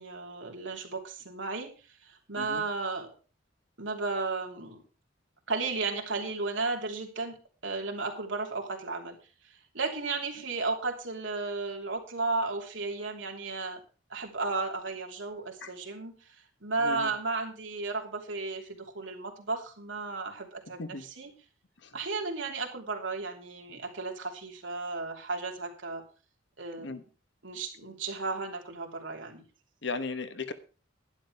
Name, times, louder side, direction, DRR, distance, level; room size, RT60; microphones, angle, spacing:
voice 1, 0.0-1.7 2.0-3.1 3.8-4.8 5.5-7.4 7.6-9.2 9.5-13.8 14.1-16.1 16.6-21.3 21.9-26.0 26.6-27.0 27.4-29.4, right 3 dB, 70° right, 3.1 m, -34 dB
voice 2, 29.8-30.5, left 3 dB, 65° left, 1.2 m, -36 dB
11.5 x 11.5 x 4.7 m
head